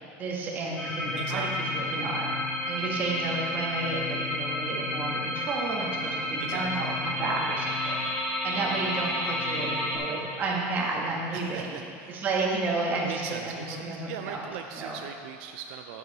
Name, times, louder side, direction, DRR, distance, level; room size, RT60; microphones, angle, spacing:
voice 1, 0.0-2.3 2.7-11.8 12.1-14.4 14.7-15.0, right 3 dB, 30° right, -3 dB, 1.5 m, -32 dB
sound 1, 0.8-10.0, left 1 dB, 15° left, 1.9 m, -31 dB
voice 2, 1.2-1.6 6.4-6.7 11.3-12.2 13.0-16.0, right 8 dB, 75° right, 5 dB, 0.4 m, -40 dB
9.5 x 7.9 x 4.2 m, 2.3 s
cardioid pair, 160°, 6 cm